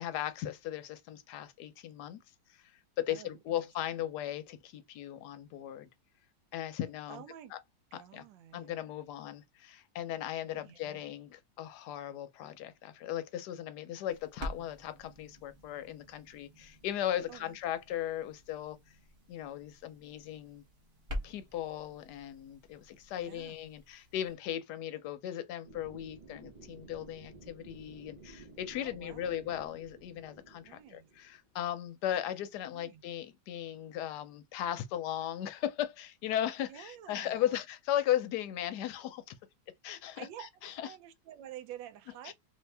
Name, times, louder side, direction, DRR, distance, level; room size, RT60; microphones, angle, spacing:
voice 1, 0.0-2.2 2.5-2.6 3.0-5.9 6.5-7.2 7.5-7.6 7.9-8.2 8.5-18.8 19.3-20.6 21.2-39.4 39.8-40.3 40.6-40.7 42.2-42.3, left 11 dB, 75° left, 1.1 m, -37 dB
voice 2, 3.1-3.4 7.1-7.5 7.9-8.8 10.6-11.0 17.3-17.6 23.2-23.7 28.8-29.4 30.6-31.1 32.7-33.0 36.7-37.6 40.2-40.5 40.8-42.3, right 11 dB, 85° right, 1.3 m, -49 dB
sound 1, 14.1-24.3, equal, 40° right, 0.7 m, -47 dB
sound 2, 25.6-31.6, right 3 dB, 60° right, 0.4 m, -54 dB
2.7 x 2.7 x 3.3 m
omnidirectional pair, 1.9 m